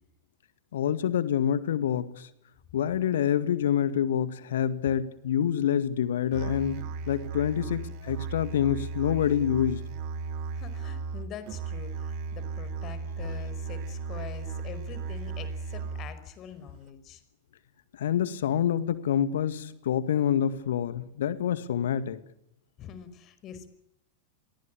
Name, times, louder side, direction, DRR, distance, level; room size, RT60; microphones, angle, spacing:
voice 1, 0.7-2.3 2.7-9.8 17.9-22.2, left 9 dB, 60° left, 14 dB, 2.0 m, -27 dB
Musical instrument, 6.3-16.3, right 5 dB, 45° right, 2.7 m, -36 dB
voice 2, 10.5-17.2 22.8-23.7, left 8 dB, 35° left, 12 dB, 5.2 m, -44 dB
29.5 x 23.0 x 8.5 m, 0.77 s
figure-of-eight pair, 90°, 0 cm